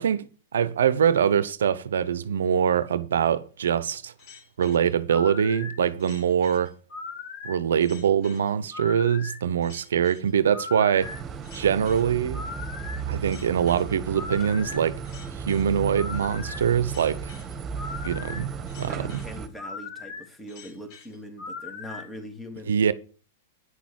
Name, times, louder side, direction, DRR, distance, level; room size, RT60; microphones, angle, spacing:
voice 1, 0.0-4.1 4.6-6.7 7.4-11.1 11.5-12.4 13.1-15.0 15.4-17.3 18.0-18.5 18.8-19.2 22.7-22.9, right 8 dB, 75° right, 0.7 m, -23 dB
sound 1, 4.2-22.1, left 5 dB, 50° left, 4.3 m, -40 dB
sound 2, 11.0-19.5, right 6 dB, 25° right, 1.9 m, -35 dB
voice 2, 18.8-22.8, equal, 10° left, 3.1 m, -41 dB
9.9 x 6.1 x 7.6 m
hypercardioid pair, 115°, 0 cm